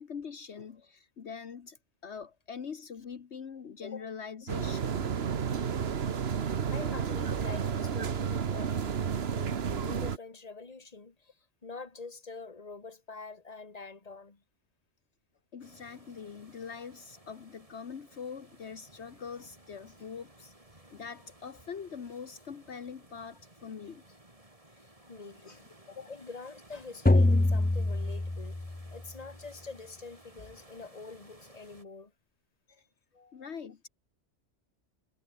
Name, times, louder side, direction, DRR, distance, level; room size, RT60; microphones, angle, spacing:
voice 1, 0.0-1.8 2.0-5.1 6.5-6.6 15.5-20.5 20.9-24.0 25.0-25.1 25.5-25.6 26.0-26.1 32.7-32.8 33.3-33.9, left 6 dB, 65° left, 1.5 m, -43 dB
sound 1, 4.5-10.2, right 7 dB, 60° right, 1.3 m, -31 dB
voice 2, 6.7-11.4 11.6-14.4 24.7-28.6 28.9-32.1 33.1-33.5, left 4 dB, 35° left, 2.0 m, -46 dB
sound 2, 15.6-31.8, right 1 dB, 30° right, 4.2 m, -58 dB
sound 3, 27.1-29.0, left 2 dB, 10° left, 0.4 m, -25 dB
omnidirectional pair, 1.2 m